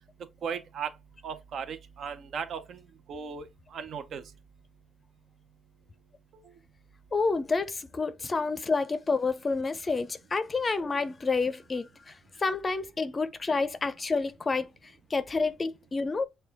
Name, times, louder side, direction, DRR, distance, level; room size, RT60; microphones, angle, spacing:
voice 1, 0.4-0.9 1.2-2.8 3.1-3.5 3.7-4.2, right 6 dB, 65° right, 0.7 m, -36 dB
voice 2, 7.1-14.7 15.1-16.2, left 4 dB, 30° left, 0.5 m, -29 dB
6.0 x 2.3 x 3.4 m
cardioid pair, 90°, 0 cm